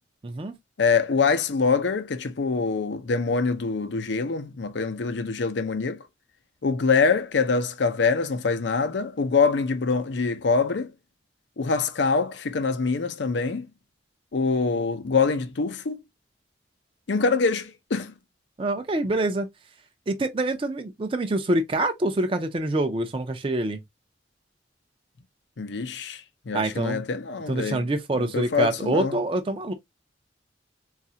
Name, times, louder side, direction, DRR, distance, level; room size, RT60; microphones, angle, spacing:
voice 1, 0.2-0.5 18.6-19.5 20.1-23.8 26.5-27.0 27.5-29.7, right 2 dB, 30° right, 0.4 m, -26 dB
voice 2, 0.8-6.0 6.6-10.9 11.6-13.7 14.3-16.0 17.1-18.1 25.6-27.9 28.2-29.2, left 4 dB, 80° left, 0.6 m, -24 dB
4.1 x 2.4 x 2.7 m
head